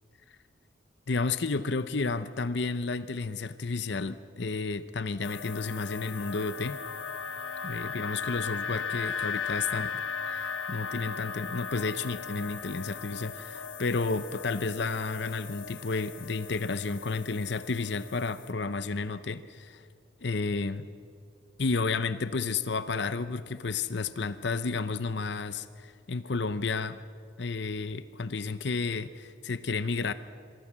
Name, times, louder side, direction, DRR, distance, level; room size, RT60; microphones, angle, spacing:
voice 1, 1.1-6.8 7.6-9.9 10.2-19.9 20.2-20.9 21.6-27.0 27.4-30.1, left 4 dB, 60° left, 13 dB, 0.7 m, -32 dB
sound 1, 5.2-18.5, left 6 dB, 85° left, 1.2 m, -37 dB
26.0 x 23.5 x 7.4 m, 2.5 s
head